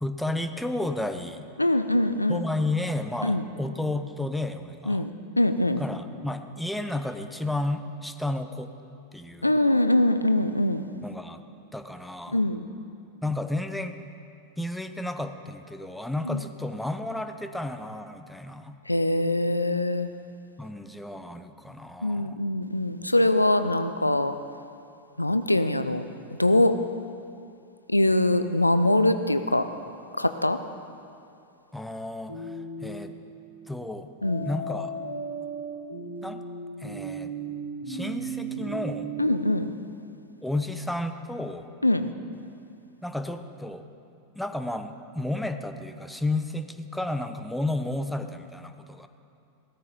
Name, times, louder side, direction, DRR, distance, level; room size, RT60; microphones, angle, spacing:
voice 1, 0.0-1.5 2.3-5.1 5.8-8.7 9.1-9.6 11.0-11.4 11.7-12.4 13.2-13.9 14.6-18.8 20.6-22.4 31.7-33.1 33.7-34.1 34.4-34.9 36.2-36.4 36.8-37.3 37.9-39.1 40.4-41.7 43.0-43.8 44.3-49.1, left 2 dB, 5° left, 8 dB, 0.8 m, -32 dB
voice 2, 1.6-2.4 3.2-3.4 4.9-5.1 5.4-5.8 9.4-10.8 12.3-12.7 16.3-16.4 18.9-20.1 22.0-24.4 25.2-26.0 26.4-26.7 27.9-29.7 30.2-30.6 34.2-34.5 39.2-39.7 41.8-42.1, left 1 dB, 85° left, 10 dB, 0.6 m, -23 dB
sound 1, 32.3-33.1 34.2-39.3, right 3 dB, 90° right, 4.4 m, -35 dB
17.0 x 13.5 x 5.3 m, 2.5 s
figure-of-eight pair, 90°, 0 cm